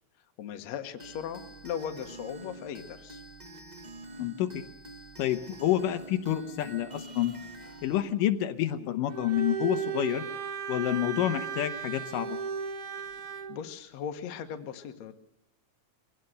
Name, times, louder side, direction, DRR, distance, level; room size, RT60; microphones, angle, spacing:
voice 1, 0.4-3.2 13.5-15.1, left 8 dB, 60° left, 6 dB, 2.4 m, -38 dB
sound 1, 1.0-8.0, right 2 dB, 45° right, 0.5 m, -46 dB
voice 2, 4.2-4.6 5.2-7.3 7.8-10.2 10.7-12.4, left 12 dB, 85° left, 7 dB, 2.7 m, -28 dB
Bowed string instrument, 9.1-13.6, right 7 dB, 70° right, 1.3 m, -35 dB
23.0 x 17.5 x 6.7 m, 0.88 s
omnidirectional pair, 3.7 m